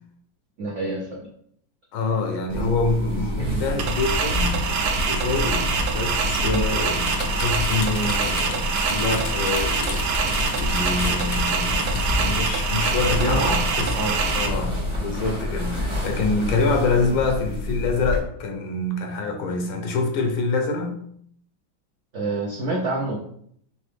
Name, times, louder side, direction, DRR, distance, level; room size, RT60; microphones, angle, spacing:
voice 1, 0.6-1.3 2.5-2.7 3.4-3.6 6.4-6.7 13.1-13.6 13.9-14.2 22.1-23.2, right 2 dB, 85° right, -2 dB, 0.6 m, -27 dB
voice 2, 1.9-4.6 5.0-5.7 5.9-10.0 10.6-13.9 14.3-21.0, left 3 dB, 85° left, 4 dB, 1.6 m, -26 dB
sound 1, 2.5-18.2, left 1 dB, 20° right, 0.9 m, -28 dB
sound 2, 3.8-14.5, right 5 dB, 70° right, 1.0 m, -25 dB
sound 3, 7.0-12.3, left 4 dB, 65° left, 0.9 m, -35 dB
4.0 x 3.4 x 3.3 m, 0.65 s
omnidirectional pair, 2.2 m